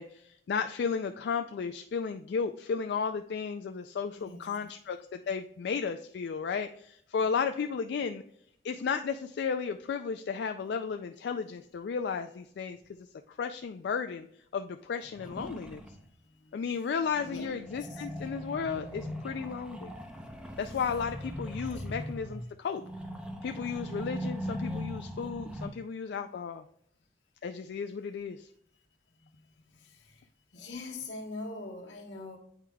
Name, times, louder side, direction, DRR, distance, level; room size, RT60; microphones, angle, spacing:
voice 1, 0.0-8.2 8.6-12.8 13.3-14.3 14.5-15.8 16.5-19.9 20.6-22.8 23.4-26.6 27.4-28.5, left 6 dB, 65° left, 0.3 m, -34 dB
voice 2, 4.2-4.7 16.4-16.9 17.2-18.1 20.6-21.0 21.7-21.8 29.7-30.2 30.5-32.4, left 2 dB, 85° left, 1.2 m, -44 dB
sound 1, 14.9-16.0 17.1-25.7, equal, 5° right, 0.6 m, -40 dB
8.8 x 4.7 x 2.3 m
head